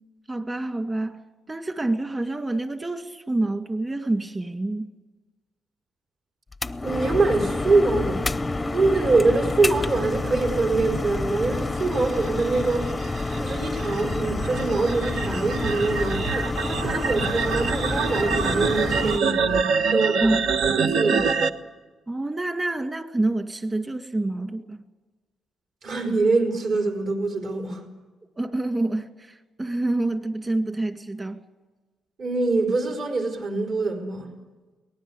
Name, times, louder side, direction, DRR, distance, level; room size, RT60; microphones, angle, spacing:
voice 1, 0.3-1.2 1.5-4.9 20.2-20.7 21.1-21.3 22.1-24.8 28.4-31.4, right 2 dB, 20° right, 2.1 m, -27 dB
sound 1, 6.5-19.2, left 2 dB, 15° left, 0.7 m, -28 dB
voice 2, 6.8-8.2 8.7-12.9 13.4-20.3 20.6-21.3 25.8-27.8 32.2-34.3, right 3 dB, 55° right, 4.5 m, -24 dB
sound 2, 12.2-21.5, right 5 dB, 75° right, 1.2 m, -26 dB
23.5 x 19.0 x 8.5 m
cardioid pair, 115°, 0 cm